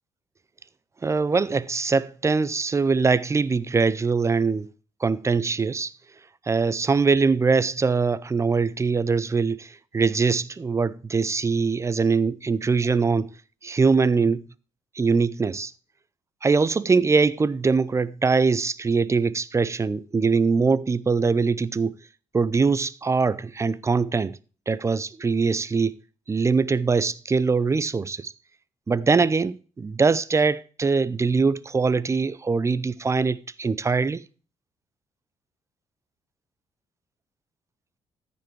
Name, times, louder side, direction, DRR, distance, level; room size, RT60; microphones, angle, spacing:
voice 1, 1.0-4.7 5.0-5.9 6.5-13.3 13.6-14.4 14.9-15.7 16.4-22.0 22.3-24.4 24.7-25.9 26.3-28.3 28.9-34.2, right 4 dB, 25° right, 0.5 m, -22 dB
14.0 x 5.3 x 4.6 m
cardioid pair, 80°, 11 cm